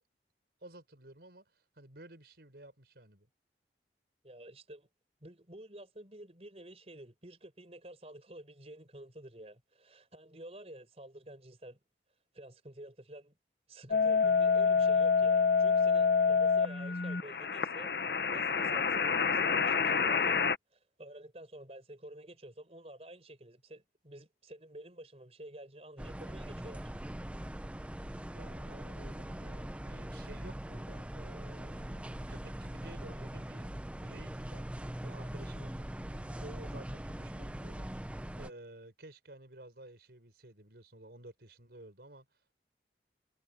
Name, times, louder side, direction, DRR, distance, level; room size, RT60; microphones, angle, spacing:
voice 1, 0.6-3.3 28.3-33.7 34.0-42.4, right 1 dB, 65° right, 4.2 m, -53 dB
voice 2, 4.2-4.9 5.2-11.8 12.3-13.3 13.7-17.9 18.3-26.9, right 1 dB, 35° right, 4.5 m, -50 dB
sound 1, 13.9-20.6, left 5 dB, 65° left, 0.9 m, -27 dB
sound 2, 26.0-38.5, right 1 dB, 5° right, 0.4 m, -42 dB
head